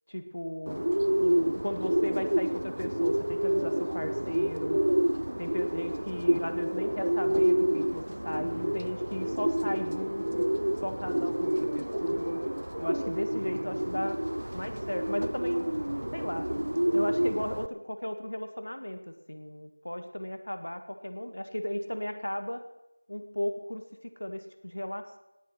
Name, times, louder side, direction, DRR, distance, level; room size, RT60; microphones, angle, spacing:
voice 1, 0.1-0.9 1.2-4.8 5.4-10.4 10.8-12.4 12.8-14.2 14.5-15.8 16.1-16.5 16.9-19.0 19.3-22.6 23.1-25.2, left 1 dB, 85° left, 8 dB, 1.6 m, -36 dB
Bird, 0.7-17.7, right 1 dB, 80° right, 0.6 m, -29 dB
18.5 x 9.7 x 5.8 m, 0.92 s
figure-of-eight pair, 180°, 0 cm